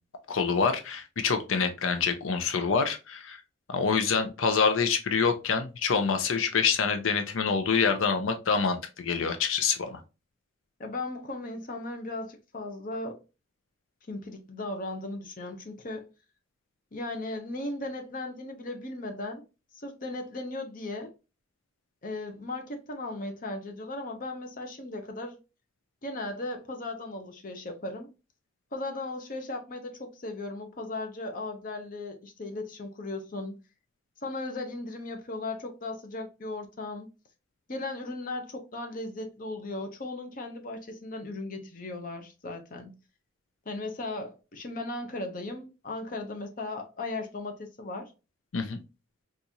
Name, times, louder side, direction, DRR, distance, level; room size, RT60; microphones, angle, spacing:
voice 1, 0.3-3.4 3.7-10.0 48.5-48.8, left 5 dB, 85° left, 0.5 m, -26 dB
voice 2, 10.8-13.2 14.1-16.1 16.9-19.4 19.7-21.1 22.0-25.4 26.0-28.1 28.7-33.6 34.2-37.1 37.7-42.9 43.7-48.1, left 2 dB, 45° left, 0.7 m, -37 dB
3.9 x 2.5 x 2.8 m
head